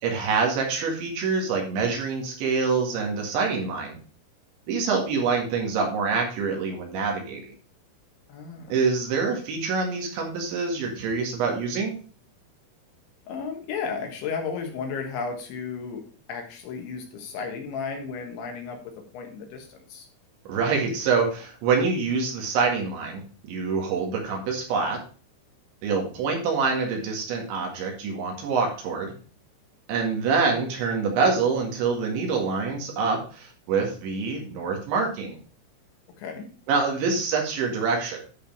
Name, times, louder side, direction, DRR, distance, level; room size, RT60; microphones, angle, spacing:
voice 1, 0.0-4.0 4.7-7.5 8.7-12.0 20.5-23.2 23.5-25.0 25.8-29.1 29.9-35.4 36.7-38.2, right 5 dB, 70° right, 1 dB, 4.2 m, -26 dB
voice 2, 8.3-8.8 13.3-16.0 16.3-20.1 36.2-36.5, left 5 dB, 70° left, 3 dB, 3.7 m, -34 dB
11.0 x 5.1 x 4.6 m, 0.39 s
omnidirectional pair, 5.8 m